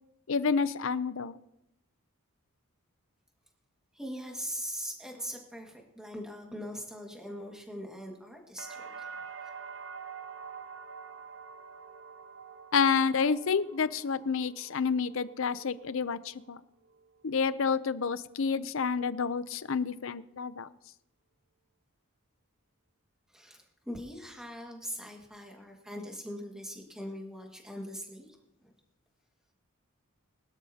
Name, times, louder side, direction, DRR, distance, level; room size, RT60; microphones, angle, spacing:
voice 1, 0.3-1.4 12.7-16.6 17.2-20.7, left 5 dB, 60° left, 15 dB, 0.6 m, -29 dB
voice 2, 3.9-9.1 23.3-28.7, equal, 5° right, 0 dB, 1.8 m, -41 dB
sound 1, 8.6-16.5 16.8-17.5, right 6 dB, 60° right, 0.7 m, -47 dB
21.5 x 12.5 x 2.8 m, 0.85 s
head